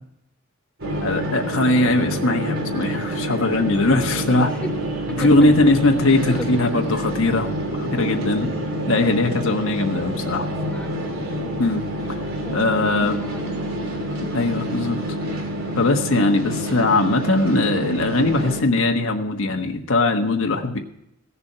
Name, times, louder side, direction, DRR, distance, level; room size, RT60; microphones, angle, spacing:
sound 1, 0.8-18.6, right 1 dB, 70° right, 3.0 m, -27 dB
voice 1, 1.0-4.5 5.2-7.5 7.8-8.5 8.9-10.5 11.6-12.2 12.5-13.2 14.3-15.0 15.7-20.8, left 2 dB, 80° left, 3 dB, 1.3 m, -20 dB
voice 2, 4.1-4.7 5.1-5.5 6.4-6.5 10.0-10.9 12.4-13.8, equal, 5° left, 2 dB, 1.1 m, -36 dB
16.0 x 7.0 x 5.6 m, 0.80 s
head